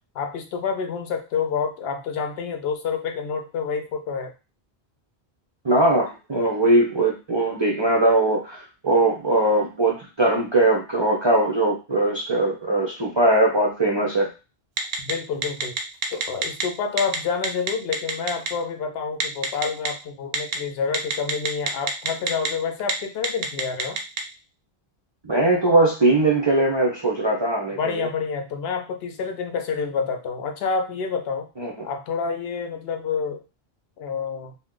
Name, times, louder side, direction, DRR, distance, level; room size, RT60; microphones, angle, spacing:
voice 1, 0.2-4.3 15.0-15.8 16.1-24.0 27.8-31.5 31.8-33.5 34.0-34.5, left 5 dB, 75° left, 5 dB, 0.8 m, -28 dB
voice 2, 5.6-14.3 25.2-28.1 31.6-31.7, right 2 dB, 40° right, -2 dB, 0.4 m, -20 dB
Telephone, 14.8-15.1 15.4-16.6 17.0-17.2 17.4-18.5 19.2-19.9 20.3-20.6 20.9-22.5 22.8-22.9 23.2-24.2, right 6 dB, 70° right, 0.8 m, -24 dB
2.8 x 2.0 x 3.6 m, 0.30 s
omnidirectional pair, 1.1 m